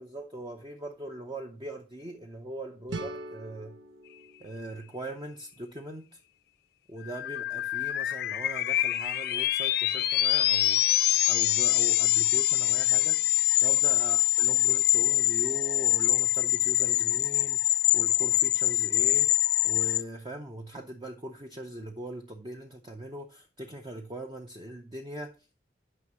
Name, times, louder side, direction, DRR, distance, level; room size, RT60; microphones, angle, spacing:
voice 1, 0.0-3.8 4.4-6.1 6.9-25.3, right 1 dB, 25° right, 0.7 m, -41 dB
sound 1, 2.9-5.8, right 2 dB, 80° right, 0.9 m, -42 dB
sound 2, 7.0-20.0, left 16 dB, 55° left, 0.4 m, -25 dB
9.6 x 5.7 x 3.0 m
head